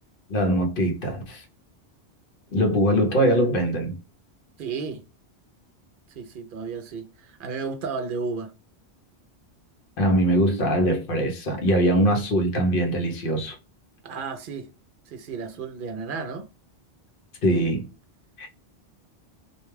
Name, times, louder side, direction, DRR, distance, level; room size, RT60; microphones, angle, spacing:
voice 1, 0.3-1.4 2.5-3.9 10.0-13.6 17.4-17.9 18.4-18.5, equal, 60° left, 0.9 m, -22 dB
voice 2, 4.6-5.0 6.2-8.5 14.0-14.7 15.1-16.5, right 5 dB, 60° right, 0.6 m, -33 dB
2.4 x 2.2 x 3.0 m
omnidirectional pair, 1.1 m